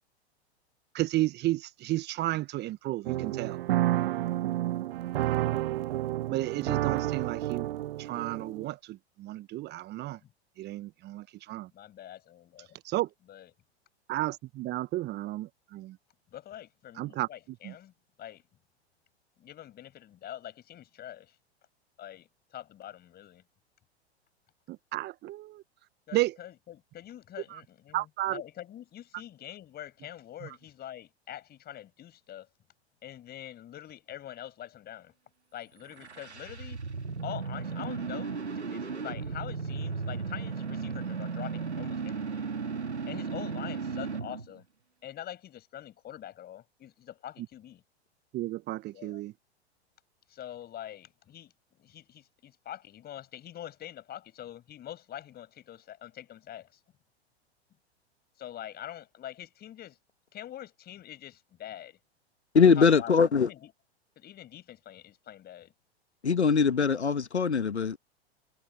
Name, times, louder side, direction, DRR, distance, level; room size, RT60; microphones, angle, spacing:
voice 1, 0.9-3.6 6.3-7.7 8.0-10.2 10.6-11.7 12.8-13.1 14.1-15.9 17.0-17.3 17.6-17.7 24.9-25.6 26.1-26.3 27.9-28.4 48.3-49.3, right 16 dB, 30° right, 1.3 m, -32 dB
sound 1, 3.1-8.7, right 15 dB, 60° right, 1.1 m, -30 dB
voice 2, 11.7-12.8 13.3-13.5 16.3-17.9 18.2-18.4 19.4-21.4 22.0-23.4 26.1-32.5 33.0-35.1 35.5-36.8 37.2-42.5 43.1-44.6 45.0-47.8 48.9-49.2 50.3-51.5 51.8-56.8 58.4-60.0 60.3-62.0 62.8-63.7 64.2-65.7, left 11 dB, 30° left, 7.1 m, -44 dB
sound 2, 35.8-44.5, right 5 dB, 90° right, 1.9 m, -35 dB
voice 3, 62.5-63.5 66.2-68.0, left 5 dB, 85° left, 1.5 m, -22 dB
figure-of-eight pair, 100°, 33 cm